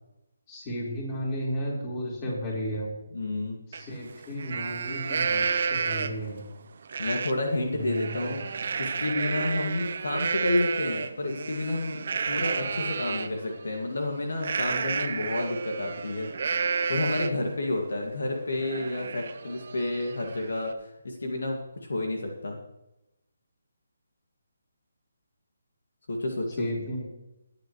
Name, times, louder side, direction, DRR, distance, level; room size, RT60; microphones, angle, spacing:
voice 1, 0.5-2.9 3.7-6.4 7.7-8.1 26.6-27.0, equal, 25° left, -3 dB, 4.4 m, -33 dB
voice 2, 3.1-3.6 7.0-16.3 16.9-22.6 26.1-26.7, left 2 dB, 70° left, 2 dB, 2.1 m, -30 dB
Livestock farm animals working animals, 3.7-3.8 4.2-6.3 6.9-7.3 7.7-13.3 14.4-17.5 17.9-18.0 18.4-20.7, right 5 dB, 50° right, 0.7 m, -31 dB
19.5 x 9.0 x 3.2 m, 0.93 s
figure-of-eight pair, 150°, 0 cm